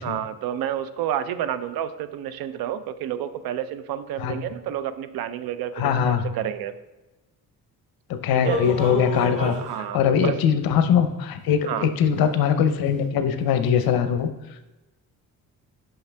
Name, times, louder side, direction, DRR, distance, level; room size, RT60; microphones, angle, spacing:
voice 1, 0.0-6.7 8.3-8.7 9.5-10.4 11.7-11.9, right 10 dB, 90° right, 13 dB, 0.5 m, -30 dB
voice 2, 5.8-6.3 8.1-9.5 9.9-14.3, left 8 dB, 85° left, 9 dB, 0.7 m, -21 dB
sound 1, 8.4-9.7 10.7-10.8 11.5-11.6 12.0-12.2 12.7-12.8 13.4-13.5 13.8-13.9, equal, 20° right, 2.2 m, -29 dB
5.8 x 5.5 x 3.3 m, 1.1 s
cardioid pair, 135°, 35 cm